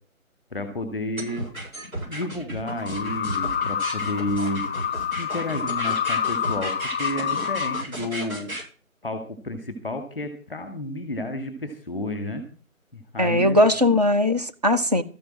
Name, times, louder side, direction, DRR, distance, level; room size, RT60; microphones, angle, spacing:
voice 1, 0.5-1.4 2.1-4.6 5.2-8.5 9.0-12.4 12.9-13.6, left 1 dB, ahead, 1.6 m, -31 dB
sound 1, 1.2-8.6, right 1 dB, 80° right, 6.6 m, -34 dB
sound 2, 2.7-7.8, left 8 dB, 50° left, 0.6 m, -28 dB
voice 2, 13.2-15.0, left 1 dB, 30° right, 0.9 m, -19 dB
13.0 x 10.5 x 6.3 m
figure-of-eight pair, 155°, 42 cm